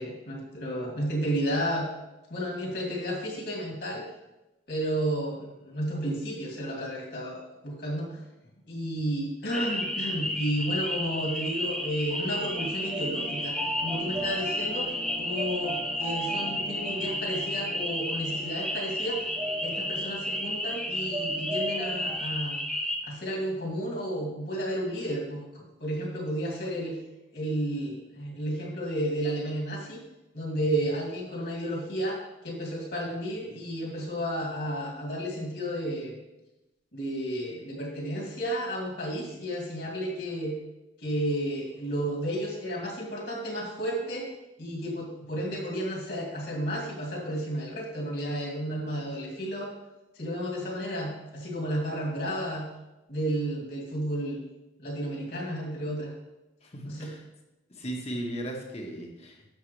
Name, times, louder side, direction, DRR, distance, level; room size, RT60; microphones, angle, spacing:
voice 1, 0.0-1.9 2.3-4.0 4.7-8.2 8.7-14.9 15.2-19.3 19.6-22.6 23.0-27.0 27.3-30.0 30.3-32.2 32.4-36.2 36.9-40.5 41.0-44.2 44.6-49.7 50.1-52.7 53.1-54.4 54.8-56.1 56.9-57.1, equal, 60° left, -2 dB, 2.6 m, -32 dB
sound 1, 9.5-23.0, left 1 dB, 5° left, 1.0 m, -32 dB
sound 2, 11.3-22.1, right 2 dB, 15° right, 1.6 m, -38 dB
voice 2, 56.6-57.2 57.7-59.5, right 1 dB, 35° left, 1 dB, 1.4 m, -37 dB
11.5 x 7.3 x 3.4 m, 0.99 s
head